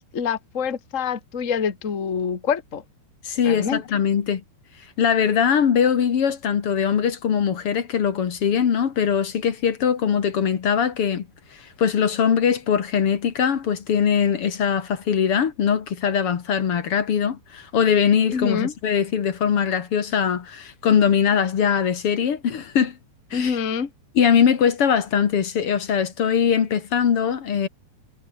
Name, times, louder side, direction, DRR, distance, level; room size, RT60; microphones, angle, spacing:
voice 1, 0.0-2.8 3.4-3.8 18.3-18.7 23.3-23.9, left 6 dB, 70° left, 0.7 m, -26 dB
voice 2, 3.2-4.4 5.0-11.3 11.6-23.0 23.3-23.6 24.2-27.7, left 7 dB, 45° left, 2.1 m, -21 dB
omnidirectional pair, 4.5 m